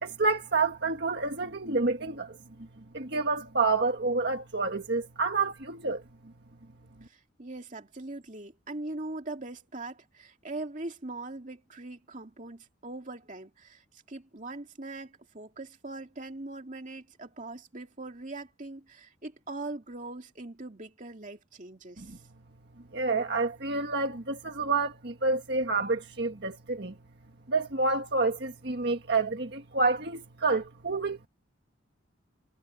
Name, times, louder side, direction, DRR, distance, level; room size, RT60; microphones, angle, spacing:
voice 1, 0.0-2.4 2.9-6.0 22.0-22.2 22.9-26.9 27.5-31.3, right 3 dB, 60° right, 1.7 m, -28 dB
voice 2, 7.1-22.2, right 2 dB, 40° right, 2.6 m, -41 dB
head